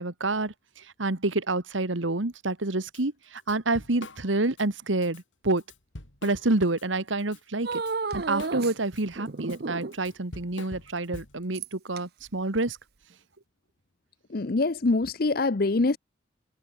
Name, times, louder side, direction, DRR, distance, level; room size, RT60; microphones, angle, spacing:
voice 1, 0.0-5.6 6.2-7.8 8.1-12.8, right 2 dB, 90° right, 1.8 m, -28 dB
Drum kit / Drum, 2.9-3.0 3.4-4.7 5.0-5.2 5.6-6.8 7.2-11.6, left 2 dB, 85° left, 5.2 m, -44 dB
sound 1, 7.6-8.8 9.2-10.1 11.5-12.0 12.7-12.8, right 4 dB, 55° right, 0.8 m, -32 dB
voice 2, 14.3-16.0, left 3 dB, 50° left, 0.7 m, -24 dB
head